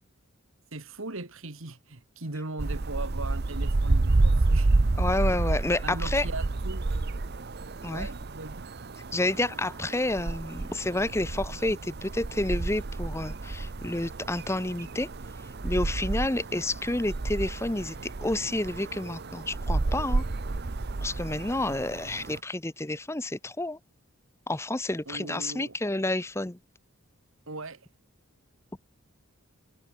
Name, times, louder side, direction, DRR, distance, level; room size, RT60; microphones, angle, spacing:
voice 1, 0.7-4.7 5.8-6.9 7.8-8.7 25.1-25.8 27.5-27.9, right 2 dB, 60° right, 2.0 m, -39 dB
sound 1, 2.6-22.4, right 2 dB, 45° right, 0.7 m, -30 dB
voice 2, 5.0-6.3 7.8-8.1 9.1-15.1 15.6-20.2 21.0-23.8 24.5-26.6, left 2 dB, 10° left, 0.8 m, -30 dB
head